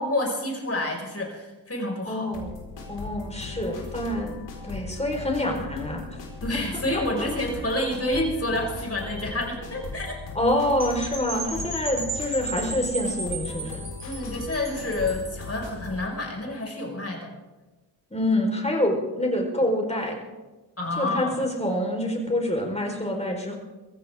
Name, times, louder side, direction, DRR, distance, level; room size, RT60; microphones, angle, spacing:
voice 1, 0.0-2.3 6.4-10.1 14.0-17.3 20.8-21.4, left 1 dB, 35° left, 0 dB, 5.5 m, -28 dB
voice 2, 2.1-2.5 2.9-4.4 4.6-6.0 7.6-7.7 10.3-13.8 18.1-20.2 21.0-23.5, left 1 dB, 15° left, 1 dB, 4.4 m, -26 dB
sound 1, 2.3-16.1, left 4 dB, 75° left, 4.8 m, -38 dB
Percussion / Wind chime, 10.8-15.5, right 2 dB, 30° right, 5.7 m, -35 dB
24.0 x 15.0 x 3.7 m, 1.2 s
cardioid pair, 70°, 43 cm